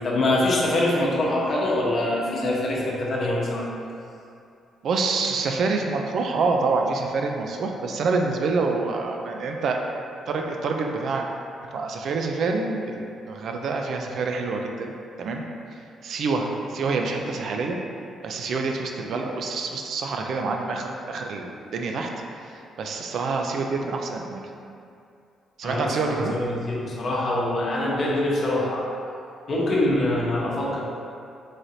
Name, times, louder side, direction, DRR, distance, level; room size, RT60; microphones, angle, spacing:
voice 1, 0.0-3.7 25.6-28.9 29.5-30.8, left 1 dB, 50° left, -4 dB, 0.8 m, -24 dB
voice 2, 4.8-9.8 10.3-11.3 11.7-14.9 15.2-15.4 16.0-17.8 18.2-22.1 22.8-24.4 25.6-26.3, right 4 dB, 65° right, 2 dB, 0.3 m, -26 dB
3.2 x 2.5 x 4.1 m, 2.5 s
cardioid pair, 90°, 0 cm